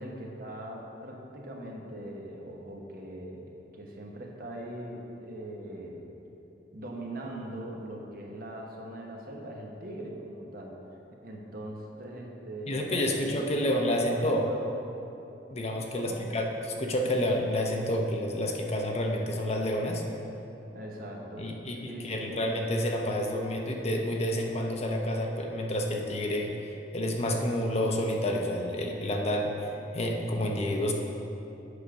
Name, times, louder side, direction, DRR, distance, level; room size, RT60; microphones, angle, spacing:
voice 1, 0.0-3.5 3.7-6.0 6.7-10.8 11.2-14.6 15.9-16.2 20.7-21.5 21.9-22.4, right 1 dB, 55° right, -1 dB, 1.1 m, -41 dB
voice 2, 12.7-14.5 15.5-20.0 21.4-30.9, left 1 dB, 35° left, 1 dB, 0.8 m, -29 dB
8.2 x 5.1 x 6.1 m, 2.9 s
head